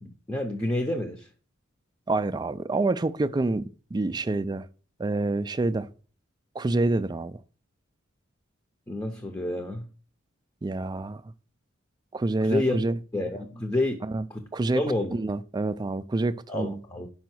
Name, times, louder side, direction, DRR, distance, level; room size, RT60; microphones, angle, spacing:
voice 1, 0.0-1.3 8.9-9.9 12.4-12.8 13.1-14.0 14.3-14.4 14.7-15.1 16.5-17.1, left 1 dB, 15° left, 0.6 m, -29 dB
voice 2, 2.1-4.7 5.0-5.9 6.5-7.4 10.6-11.2 12.1-13.0 14.0-14.3 14.5-14.8 15.1-16.8, right 2 dB, 20° right, 0.3 m, -27 dB
5.6 x 5.1 x 6.0 m
head